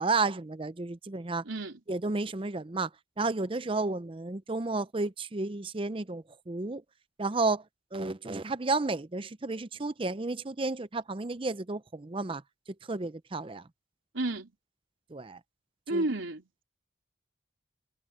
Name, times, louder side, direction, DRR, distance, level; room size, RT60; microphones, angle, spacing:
voice 1, 0.0-1.4 1.9-2.9 3.2-6.8 7.2-7.6 7.9-12.4 12.9-13.7 15.1-15.4 15.9-16.0, right 3 dB, 25° right, 0.5 m, -32 dB
voice 2, 1.4-1.8 14.1-14.5 15.9-16.5, right 2 dB, 75° right, 3.6 m, -31 dB
head